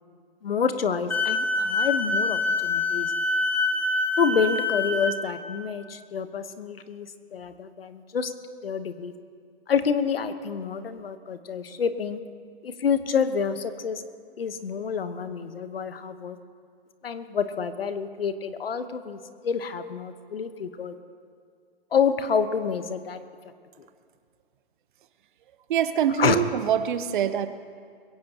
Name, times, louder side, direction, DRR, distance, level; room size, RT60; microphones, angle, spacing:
voice 1, 0.4-3.1 4.2-8.3 8.6-9.1 9.7-12.2 12.6-14.0 14.4-16.4 17.0-19.2 19.4-20.9 21.9-23.2 26.2-26.4, left 6 dB, 80° left, 11 dB, 1.1 m, -28 dB
Wind instrument woodwind instrument, 1.1-5.2, left 3 dB, 5° left, 0.7 m, -25 dB
voice 2, 25.7-27.5, right 9 dB, 55° right, 12 dB, 0.9 m, -24 dB
21.5 x 16.5 x 2.9 m, 2.2 s
hypercardioid pair, 125°, 29 cm